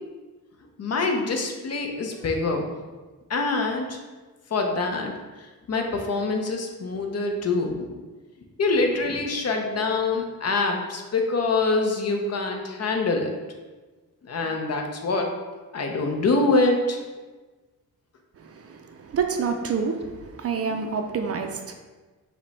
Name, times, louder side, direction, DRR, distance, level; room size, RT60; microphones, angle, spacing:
voice 1, 0.8-2.7 3.3-4.0 4.5-5.1 5.7-8.0 8.6-13.3 14.2-15.3 15.7-17.0 20.7-20.8, left 3 dB, 45° left, 3 dB, 0.6 m, -25 dB
voice 2, 18.4-21.7, right 5 dB, 45° right, 4 dB, 0.4 m, -28 dB
5.2 x 2.2 x 4.0 m, 1.3 s
wide cardioid pair, 120°, 34 cm